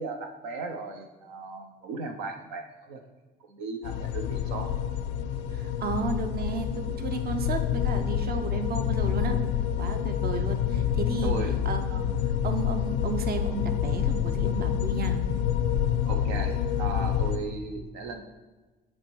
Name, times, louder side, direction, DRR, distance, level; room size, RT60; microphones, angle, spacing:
voice 1, 0.0-3.0 3.5-4.7 11.2-11.6 15.7-18.2, right 4 dB, 85° right, 5 dB, 0.6 m, -36 dB
sound 1, 3.8-17.4, left 9 dB, 90° left, 0.5 m, -27 dB
voice 2, 5.5-9.4 9.8-11.3 11.6-12.2 12.4-15.2, right 4 dB, 50° right, 8 dB, 0.8 m, -33 dB
7.2 x 3.2 x 4.6 m, 1.2 s
hypercardioid pair, 60°, 21 cm